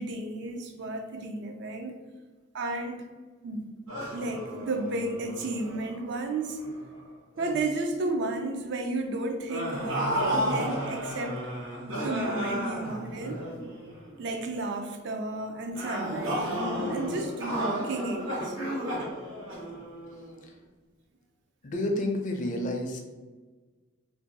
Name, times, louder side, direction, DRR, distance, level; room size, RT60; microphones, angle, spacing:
voice 1, 0.0-2.0 2.5-3.0 3.4-3.7 4.1-6.6 7.4-11.4 11.9-13.4 14.2-16.6 16.9-18.7, right 2 dB, 55° right, 5 dB, 0.4 m, -33 dB
sound 1, 3.9-7.0 7.4-7.7 9.5-14.1 15.7-20.3, equal, 75° right, 1.1 m, -33 dB
voice 2, 21.6-23.0, left 1 dB, 40° left, 3 dB, 0.4 m, -29 dB
2.6 x 2.2 x 3.9 m, 1.3 s
head